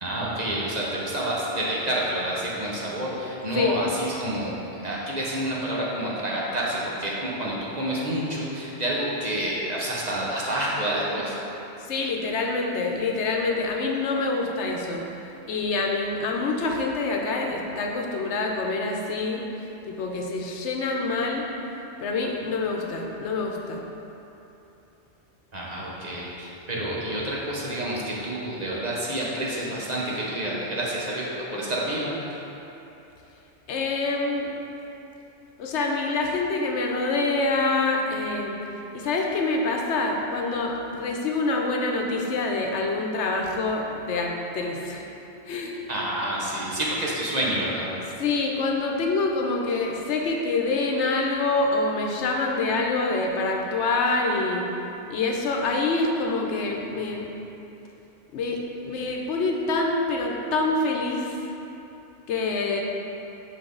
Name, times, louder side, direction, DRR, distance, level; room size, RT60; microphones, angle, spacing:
voice 1, 0.0-4.5 4.8-11.4 25.5-32.3 45.9-47.9, right 1 dB, 40° right, -5 dB, 1.0 m, -28 dB
voice 2, 11.8-15.0 15.5-21.5 22.0-23.8 33.7-34.5 35.6-38.6 38.9-45.1 45.4-45.8 48.2-54.7 55.1-57.3 58.3-61.4 62.3-62.8, left 3 dB, 80° left, 1 dB, 1.0 m, -26 dB
5.9 x 5.5 x 3.8 m, 3.0 s
omnidirectional pair, 1.2 m